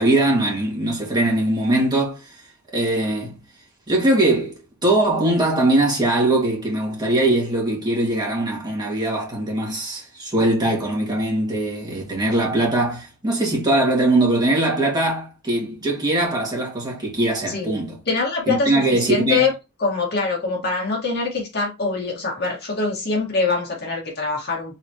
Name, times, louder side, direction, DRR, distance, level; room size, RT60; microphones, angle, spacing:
voice 1, 0.0-2.4 2.7-3.4 3.9-18.0 18.5-19.5, right 1 dB, 20° right, 2.0 m, -21 dB
voice 2, 17.5-17.8 18.1-19.5 19.8-24.8, left 4 dB, 50° left, 1.9 m, -24 dB
4.1 x 4.1 x 3.0 m
head